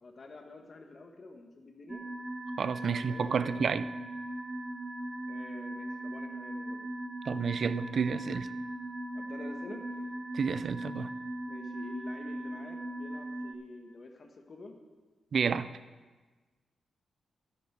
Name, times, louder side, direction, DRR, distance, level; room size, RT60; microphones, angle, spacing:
voice 1, 0.0-2.0 2.8-3.9 5.3-6.9 9.1-10.1 11.5-14.7, left 3 dB, 35° left, 4 dB, 1.3 m, -48 dB
sound 1, 1.9-13.5, right 1 dB, 15° right, 0.7 m, -39 dB
voice 2, 2.6-3.9 7.3-8.5 10.3-11.1 15.3-15.7, right 6 dB, 50° right, 14 dB, 0.4 m, -30 dB
11.5 x 11.0 x 4.7 m, 1.3 s
wide cardioid pair, 155°, 0 cm